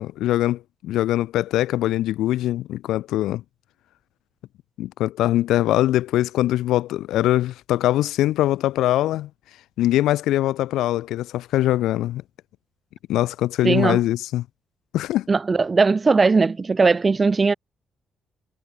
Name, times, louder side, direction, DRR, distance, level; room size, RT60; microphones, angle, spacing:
voice 1, 0.0-3.4 4.8-9.3 9.8-12.2 13.1-14.4 14.9-15.3, left 14 dB, 85° left, 0.8 m, -22 dB
voice 2, 13.6-14.0 15.3-17.5, right 4 dB, 30° right, 4.4 m, -18 dB
cardioid pair, 90°, 0 cm